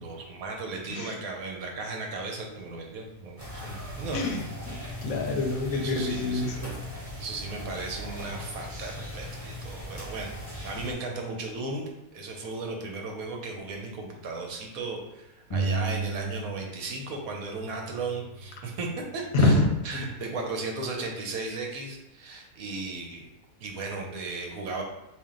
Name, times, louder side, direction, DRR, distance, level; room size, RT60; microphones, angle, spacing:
voice 1, 0.0-4.4 5.7-6.6 7.2-11.8 12.1-18.9 19.1-19.6 19.8-23.3 23.6-24.8, right 3 dB, 75° right, 1 dB, 1.1 m, -36 dB
sound 1, 3.4-10.9, left 1 dB, 25° right, 1.0 m, -39 dB
voice 2, 4.1-6.7 19.3-19.7 19.9-20.1, left 2 dB, 75° left, 3 dB, 0.9 m, -26 dB
sound 2, 15.5-17.0 17.3-19.0, right 4 dB, 30° left, 0.8 m, -34 dB
3.5 x 2.5 x 3.6 m, 0.94 s
omnidirectional pair, 1.6 m